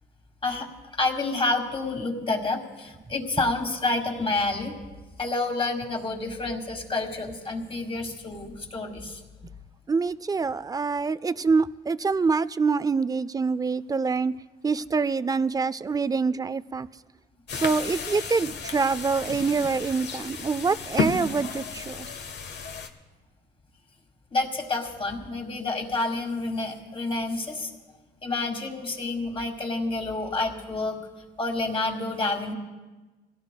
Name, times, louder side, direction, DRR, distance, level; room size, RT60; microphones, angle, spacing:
voice 1, 1.0-4.8 5.2-9.2 24.3-27.7 28.2-31.0 31.4-32.5, left 2 dB, 30° left, 2.1 m, -29 dB
voice 2, 9.9-14.3 14.6-16.9 17.6-22.1, right 4 dB, 20° right, 0.4 m, -25 dB
sound 1, 17.5-22.9, left 5 dB, 60° left, 1.3 m, -33 dB
24.0 x 17.0 x 2.3 m
cardioid pair, 90°, 20 cm